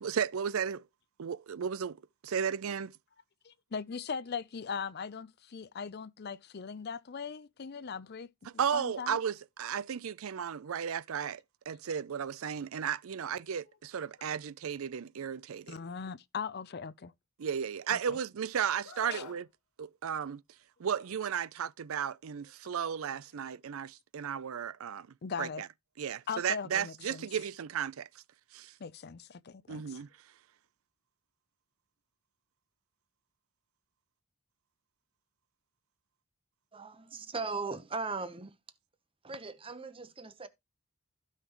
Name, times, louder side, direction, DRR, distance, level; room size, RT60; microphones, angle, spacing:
voice 1, 0.0-0.8 1.2-2.0 2.2-2.9 8.5-11.4 11.7-15.8 17.4-19.5 19.8-20.4 20.8-25.1 25.4-25.7 26.0-28.1 28.5-28.7 29.7-30.1, right 7 dB, 70° right, 0.4 m, -34 dB
voice 2, 3.4-9.2 15.7-17.1 17.9-18.2 19.1-19.2 25.2-25.6 26.3-27.3 28.8-29.1 29.7-30.0, left 6 dB, 50° left, 0.5 m, -39 dB
Screaming, 18.8-19.4 20.9-21.1, left 4 dB, 85° left, 1.6 m, -46 dB
voice 3, 36.7-38.5 39.2-40.5, right 4 dB, 25° right, 0.9 m, -38 dB
15.5 x 5.8 x 3.0 m
head